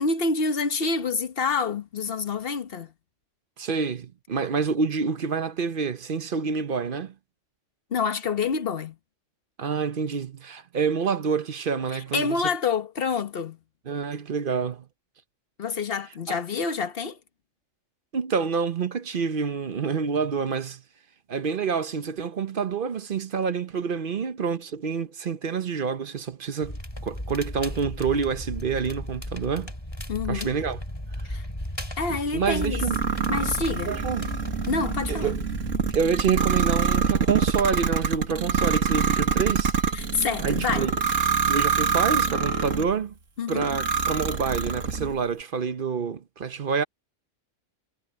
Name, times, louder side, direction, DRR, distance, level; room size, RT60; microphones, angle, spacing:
voice 1, 0.0-2.9 7.9-9.0 12.1-13.6 15.6-17.2 30.1-30.5 31.2-31.5 32.0-32.8 33.3-33.9 34.7-35.3 39.9-40.9 43.4-43.7, left 4 dB, 50° left, 1.3 m, -27 dB
voice 2, 3.6-7.1 9.6-12.5 13.9-14.8 18.1-20.8 21.3-29.7 30.3-30.8 32.3-33.0 33.9-34.3 35.1-35.4 35.9-39.7 40.4-40.9 41.5-43.1 43.5-46.8, right 6 dB, 50° right, 0.9 m, -27 dB
Crackle, 26.6-36.0, left 1 dB, 20° left, 5.6 m, -35 dB
sound 1, 32.6-42.9 43.5-45.1, right 6 dB, 85° right, 2.3 m, -25 dB
omnidirectional pair, 1.3 m